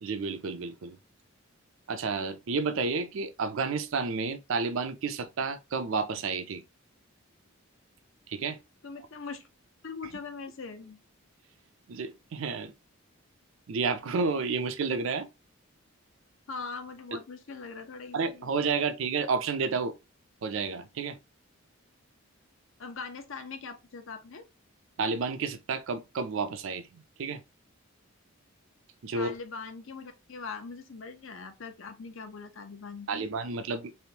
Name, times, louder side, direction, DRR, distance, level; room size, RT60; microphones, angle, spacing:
voice 1, 0.0-1.0 1.9-6.6 8.3-8.6 11.9-12.7 13.7-15.3 17.1-17.2 18.1-19.9 20.4-21.2 25.0-27.4 29.0-29.3 33.1-34.0, right 4 dB, 70° right, 0.4 m, -31 dB
voice 2, 8.8-9.5 9.8-11.0 16.5-18.5 22.8-24.4 29.1-33.3, left 4 dB, 65° left, 0.6 m, -41 dB
3.4 x 2.5 x 2.8 m
head